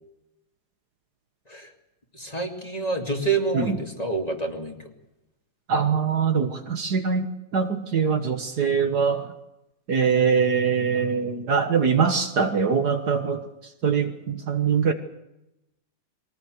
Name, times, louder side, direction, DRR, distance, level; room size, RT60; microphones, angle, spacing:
voice 1, 2.1-4.9, right 3 dB, 20° left, 3 dB, 2.6 m, -28 dB
voice 2, 5.7-9.3 9.9-13.4 13.8-14.9, right 6 dB, 60° right, 7 dB, 1.9 m, -23 dB
22.0 x 18.5 x 7.9 m, 0.89 s
omnidirectional pair, 2.1 m